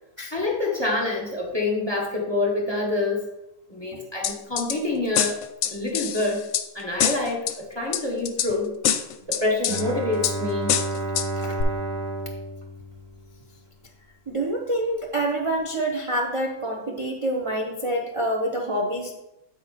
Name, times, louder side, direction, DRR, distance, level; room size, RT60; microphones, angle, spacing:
voice 1, 0.3-3.3 3.7-5.4 5.7-6.5 6.7-8.7 9.3-10.7, left 2 dB, 20° left, -2 dB, 1.0 m, -26 dB
sound 1, 4.2-4.8 5.1-6.6 7.0-7.5 7.9-8.5 8.8-9.8 10.2-10.4 10.7-11.3 11.6-11.7, left 9 dB, 70° left, 0.9 m, -24 dB
Bowed string instrument, 9.7-13.6, right 2 dB, 65° right, 1.7 m, -31 dB
voice 2, 14.3-19.2, right 1 dB, 35° right, 0 dB, 0.5 m, -27 dB
8.2 x 4.6 x 4.1 m, 0.92 s
omnidirectional pair, 1.6 m